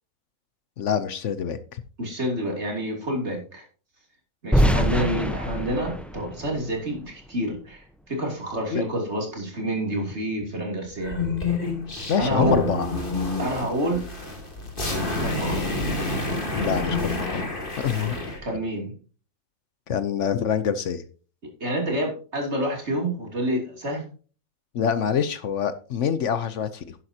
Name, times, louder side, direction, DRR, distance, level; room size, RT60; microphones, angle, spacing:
voice 1, 0.8-1.8 8.7-8.8 12.1-12.9 16.5-17.4 17.8-18.2 19.9-21.0 24.7-26.9, left 7 dB, 65° left, 13 dB, 1.1 m, -26 dB
voice 2, 2.0-3.6 4.4-11.2 12.2-12.7 13.4-14.0 15.2-15.8 17.9-18.9 21.6-24.1, right 1 dB, 55° right, 1 dB, 3.4 m, -28 dB
sound 1, 4.5-7.5, equal, ahead, 0.8 m, -24 dB
sound 2, 11.0-18.4, left 3 dB, 40° left, 2.5 m, -28 dB
11.0 x 10.5 x 2.8 m, 0.38 s
omnidirectional pair, 1.4 m